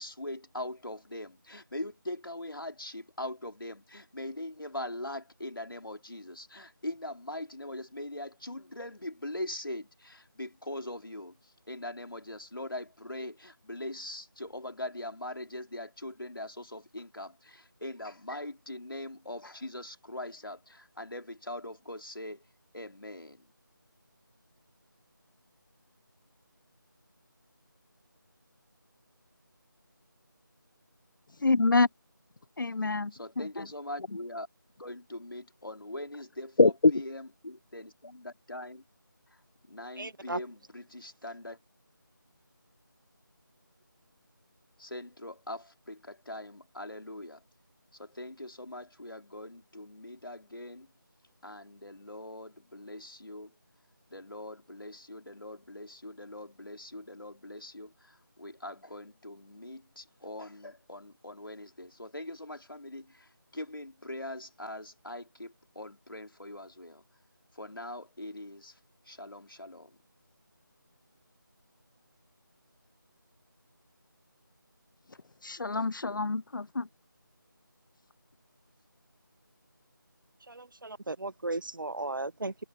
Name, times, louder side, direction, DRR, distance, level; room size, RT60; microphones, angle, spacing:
voice 1, 0.0-22.4 22.7-23.4 33.1-34.5 34.8-38.8 39.3-39.4 39.7-41.6 44.8-47.4 47.9-50.9 51.4-53.5 54.1-67.0 67.5-68.8 69.1-70.0 75.7-76.3, left 1 dB, 90° left, 3.7 m, -42 dB
voice 2, 31.4-31.9 32.6-33.1 36.6-36.7 75.4-76.9, left 3 dB, 65° left, 0.6 m, -25 dB
voice 3, 40.0-40.4 80.5-82.6, right 2 dB, 70° right, 1.5 m, -36 dB
figure-of-eight pair, 170°, 11 cm